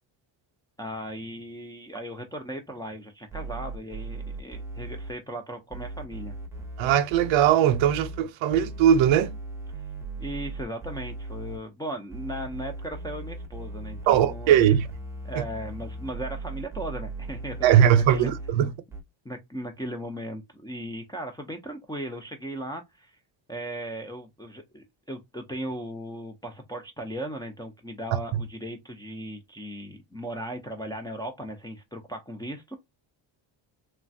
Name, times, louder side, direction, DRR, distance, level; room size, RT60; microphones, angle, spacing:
voice 1, 0.8-6.3 10.2-14.8 15.2-18.3 19.2-23.2 23.5-32.8, right 1 dB, 10° left, 0.3 m, -37 dB
sound 1, 3.3-5.1 5.7-8.2 8.5-11.6 12.1-18.5 18.9-19.0, right 2 dB, 5° right, 0.7 m, -38 dB
voice 2, 6.8-9.3 14.1-14.8 17.6-18.7 28.3-28.4, right 10 dB, 85° right, 0.6 m, -20 dB
3.1 x 2.2 x 2.5 m
cardioid pair, 130°, 46 cm